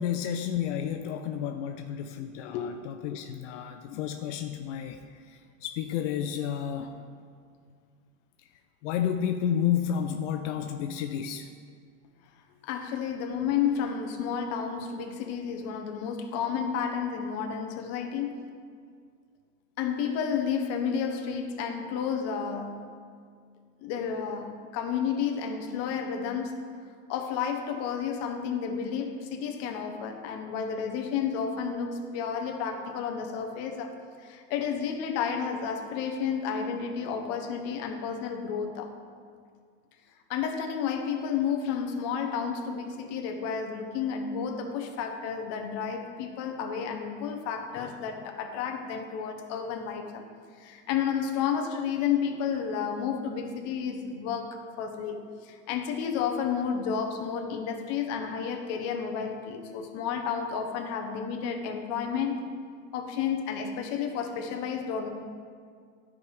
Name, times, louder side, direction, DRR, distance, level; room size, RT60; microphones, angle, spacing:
voice 1, 0.0-5.0 5.3-7.0 8.8-11.5, left 9 dB, 75° left, 6 dB, 0.6 m, -31 dB
voice 2, 12.6-18.5 19.8-22.8 23.8-26.5 27.1-33.9 34.2-38.9 40.3-50.2 50.6-62.4 62.9-65.1, left 7 dB, 45° left, 4 dB, 1.0 m, -31 dB
13.0 x 4.9 x 3.4 m, 2.1 s
supercardioid pair, 150°, 37 cm